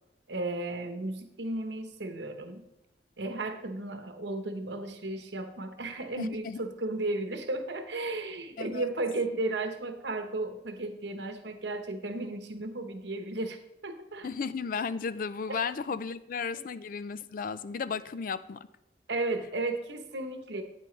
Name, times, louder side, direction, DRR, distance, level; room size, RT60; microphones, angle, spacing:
voice 1, 0.3-2.6 3.2-13.6 13.8-14.3 16.5-16.6 19.1-20.6, right 2 dB, 80° right, 8 dB, 1.0 m, -34 dB
voice 2, 6.2-6.6 8.6-8.9 14.2-18.7, left 5 dB, 50° left, 15 dB, 0.4 m, -34 dB
9.1 x 8.8 x 3.3 m, 0.91 s
head